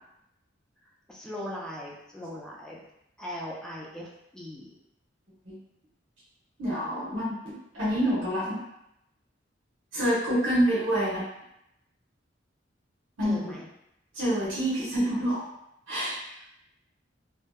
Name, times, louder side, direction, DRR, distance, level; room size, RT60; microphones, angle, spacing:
voice 1, 1.1-2.8 3.2-4.8 13.2-13.7 16.3-16.5, left 1 dB, 5° left, -4 dB, 0.4 m, -39 dB
voice 2, 6.6-8.6 9.9-11.2 13.2-13.5 14.1-15.4 15.9-16.2, equal, 80° right, -8 dB, 0.9 m, -27 dB
2.6 x 2.2 x 2.2 m, 0.82 s
head